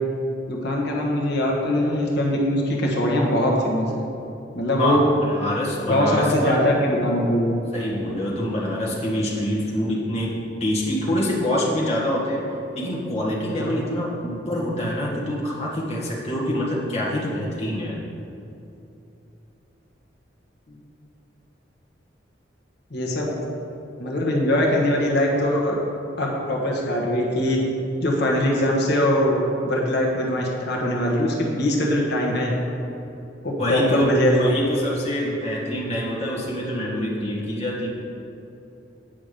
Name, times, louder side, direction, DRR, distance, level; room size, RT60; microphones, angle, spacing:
voice 1, 0.5-4.0 4.5-5.0 5.9-7.5 13.6-13.7 20.7-20.8 22.9-23.3 24.0-25.7 26.2-27.6 28.0-29.4 29.6-32.5 33.4-34.5, left 1 dB, 65° left, -2 dB, 1.3 m, -22 dB
voice 2, 4.8-6.7 7.7-12.4 12.7-18.0 33.6-37.9, equal, 35° left, -5 dB, 1.8 m, -25 dB
8.8 x 5.8 x 5.2 m, 2.9 s
head